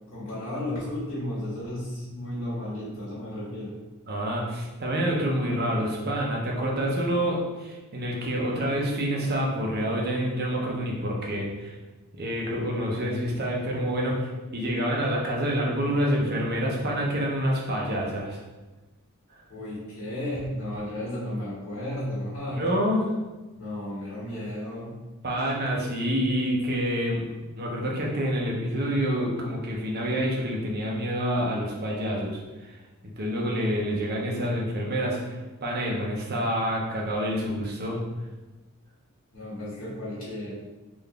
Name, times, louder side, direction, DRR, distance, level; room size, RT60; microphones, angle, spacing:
voice 1, 0.1-3.7 19.5-22.6 23.5-24.9 39.3-40.5, left 1 dB, 65° left, -9 dB, 1.5 m, -33 dB
voice 2, 4.1-11.7 12.1-18.4 22.5-23.1 25.2-27.3 27.5-32.8 33.2-38.0, equal, 45° right, -2 dB, 0.8 m, -27 dB
3.8 x 2.6 x 3.4 m, 1.2 s
head